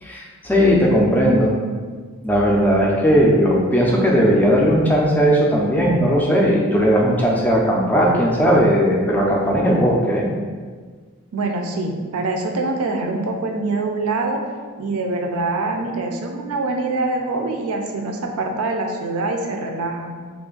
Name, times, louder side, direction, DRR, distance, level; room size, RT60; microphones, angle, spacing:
voice 1, 0.0-1.5 2.2-10.3, equal, 10° left, -2 dB, 0.4 m, -17 dB
voice 2, 11.3-14.4 14.8-20.1, right 2 dB, 80° right, 3 dB, 0.5 m, -24 dB
3.1 x 2.5 x 3.8 m, 1.6 s
head